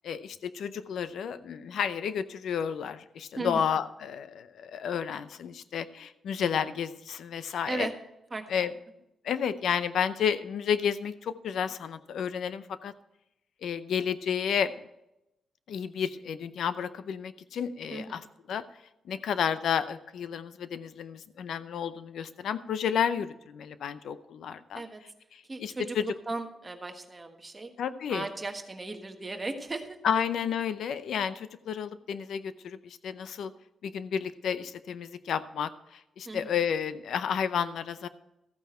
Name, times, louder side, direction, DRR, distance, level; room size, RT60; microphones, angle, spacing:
voice 1, 0.0-7.9 8.5-8.7 9.2-12.9 13.6-14.7 15.7-18.2 18.5-18.6 19.1-24.8 25.3-26.0 27.8-28.3 30.0-33.5 33.8-38.1, left 8 dB, 75° left, 13 dB, 0.6 m, -31 dB
voice 2, 8.3-8.7 17.9-18.2 24.7-25.0 25.4-27.7 28.1-30.0 36.2-36.5, right 2 dB, 20° right, 5 dB, 1.3 m, -36 dB
14.0 x 9.3 x 4.4 m, 0.88 s
wide cardioid pair, 150°, 0 cm